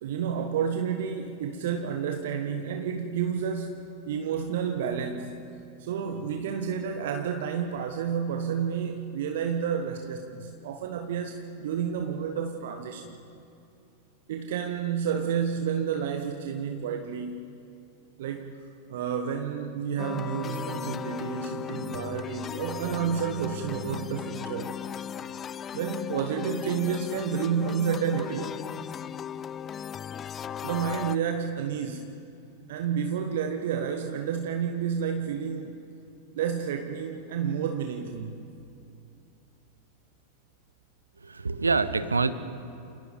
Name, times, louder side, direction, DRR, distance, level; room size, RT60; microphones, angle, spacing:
voice 1, 0.0-3.8 4.0-5.4 5.8-13.2 14.3-17.5 18.2-18.5 18.9-24.8 25.7-28.6 30.6-32.1 32.7-35.8 36.3-38.5, right 7 dB, 55° right, 5 dB, 1.3 m, -30 dB
sound 1, 20.0-31.2, left 9 dB, 25° left, 0.4 m, -37 dB
voice 2, 41.2-42.3, right 4 dB, 80° right, 14 dB, 1.0 m, -25 dB
29.0 x 18.0 x 5.1 m, 2.7 s
figure-of-eight pair, 90°, 0 cm